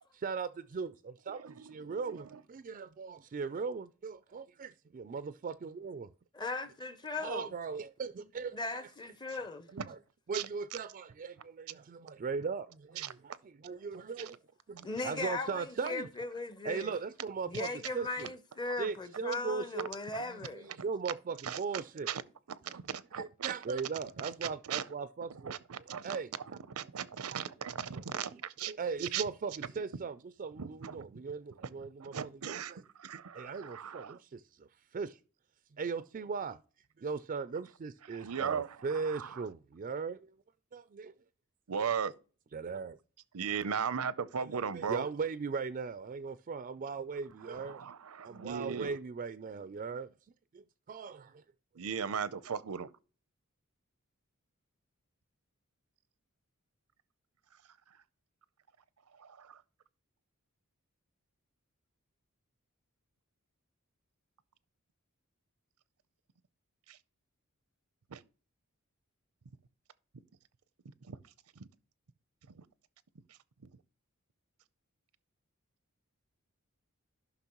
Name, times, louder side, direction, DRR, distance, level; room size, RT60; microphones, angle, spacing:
voice 1, 0.1-6.1 7.2-8.9 9.7-10.0 10.3-14.4 14.7-16.1 16.6-18.3 18.8-19.9 20.2-22.1 22.6-22.8 23.1-25.6 25.9-26.6 27.3-27.5 28.1-28.4 28.7-32.8 33.3-35.2 35.7-36.6 37.0-40.3 40.7-41.1 42.5-43.0 44.4-47.8 48.2-50.1 50.5-51.4, right 5 dB, 40° right, 0.3 m, -39 dB
voice 2, 6.3-7.5 8.5-9.7 14.8-16.9 17.4-20.7, left 3 dB, 20° left, 0.6 m, -38 dB
voice 3, 13.0-13.4 21.4-21.6 22.1-22.2 22.7-23.5 24.4-24.8 25.4-26.2 26.7-28.7 29.0-29.2 30.6-31.0 32.0-32.7 33.0-34.2 38.1-39.5 41.7-42.1 43.3-45.1 47.5-48.9 51.8-52.9 59.2-59.6 66.9-67.0 68.1-68.2 71.1-71.2 72.6-72.7, right 7 dB, 85° right, 0.6 m, -37 dB
12.0 x 5.8 x 3.0 m
head